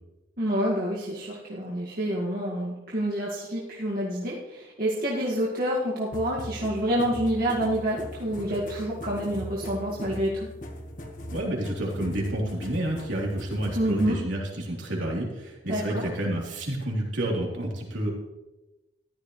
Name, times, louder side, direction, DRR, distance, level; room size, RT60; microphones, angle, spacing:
voice 1, 0.4-10.5 13.8-14.1 15.7-16.0, equal, 50° right, -6 dB, 2.0 m, -28 dB
sound 1, 6.1-14.2, equal, 40° left, 1.5 m, -40 dB
voice 2, 11.3-18.1, right 1 dB, 75° right, -3 dB, 3.5 m, -29 dB
14.5 x 12.0 x 3.2 m, 1.0 s
head